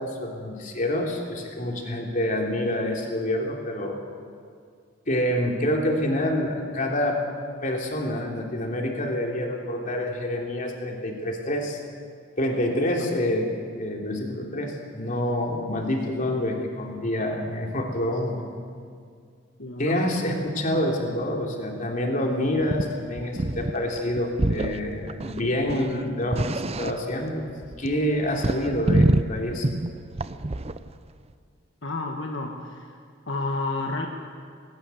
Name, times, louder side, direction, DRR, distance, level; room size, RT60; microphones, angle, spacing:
voice 1, 0.0-4.0 5.1-7.2 7.6-11.8 12.4-13.5 13.8-18.5 19.8-27.5 27.8-29.7, left 1 dB, 45° left, 0 dB, 3.3 m, -27 dB
voice 2, 12.7-13.1 19.6-20.0 31.8-33.0 33.3-34.1, left 2 dB, 75° left, 2 dB, 1.6 m, -31 dB
sound 1, 22.6-22.9 23.2-23.7 24.0-24.8 25.1-27.2 27.5-30.9, right 2 dB, 35° right, 0.7 m, -25 dB
18.5 x 18.0 x 9.3 m, 2.2 s
head